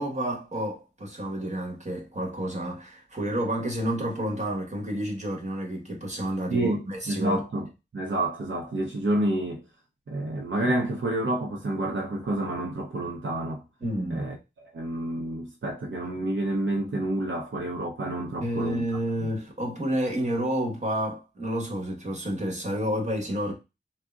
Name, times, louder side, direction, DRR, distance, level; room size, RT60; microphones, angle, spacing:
voice 1, 0.0-7.4 13.8-14.2 18.4-23.5, right 1 dB, 35° right, 1.1 m, -30 dB
voice 2, 6.5-7.7 7.9-9.6 10.1-13.6 14.1-14.4 14.7-18.9 19.2-19.3, right 1 dB, 80° right, 0.6 m, -29 dB
3.6 x 2.0 x 2.3 m
wide cardioid pair, 65°, 20 cm